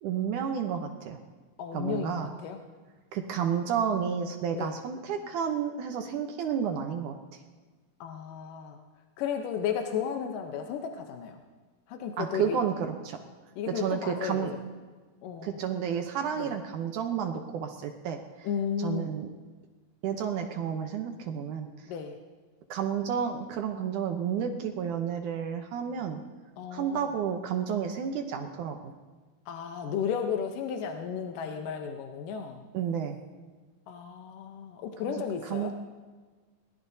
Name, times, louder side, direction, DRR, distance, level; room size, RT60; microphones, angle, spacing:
voice 1, 0.0-1.2 1.7-2.3 3.1-7.2 12.2-13.2 13.8-14.5 15.4-18.5 18.8-19.3 20.0-21.7 22.7-26.2 26.7-28.9 32.7-33.2 35.1-35.7, right 7 dB, 75° right, 4 dB, 2.3 m, -31 dB
voice 2, 1.6-2.6 4.5-4.7 8.0-8.8 9.2-11.4 11.9-12.6 13.6-14.5 15.2-15.6 16.4-16.5 18.4-19.1 21.9-22.2 26.6-27.1 29.5-32.6 33.9-35.7, left 7 dB, 85° left, 4 dB, 2.5 m, -34 dB
22.0 x 19.0 x 2.7 m, 1.4 s
omnidirectional pair, 3.8 m